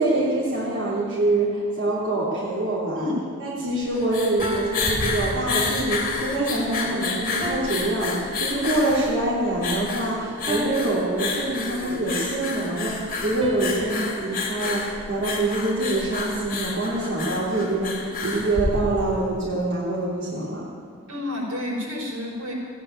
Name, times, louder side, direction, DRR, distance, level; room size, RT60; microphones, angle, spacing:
voice 1, 0.0-3.1 3.4-20.7, right 2 dB, 60° right, -8 dB, 3.3 m, -25 dB
sound 1, 3.8-19.3, left 3 dB, 45° left, 2.9 m, -29 dB
sound 2, 4.4-6.0 7.4-9.1 10.5-12.1 13.4-15.8, equal, 25° right, 0.7 m, -36 dB
voice 2, 21.1-22.5, left 1 dB, 80° right, -2 dB, 5.1 m, -30 dB
16.0 x 9.9 x 9.1 m, 2.1 s
head